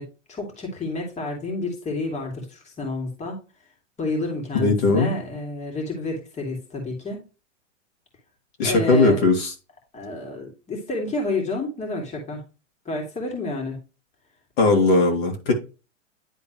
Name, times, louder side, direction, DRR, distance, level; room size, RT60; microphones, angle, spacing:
voice 1, 0.0-3.4 4.0-7.2 8.6-9.2 9.9-12.4 12.8-13.8, left 2 dB, 20° left, 2.6 m, -30 dB
voice 2, 4.6-5.1 8.6-9.5 14.6-15.5, left 3 dB, 55° left, 2.7 m, -18 dB
10.5 x 3.8 x 3.0 m
hypercardioid pair, 120°, 37 cm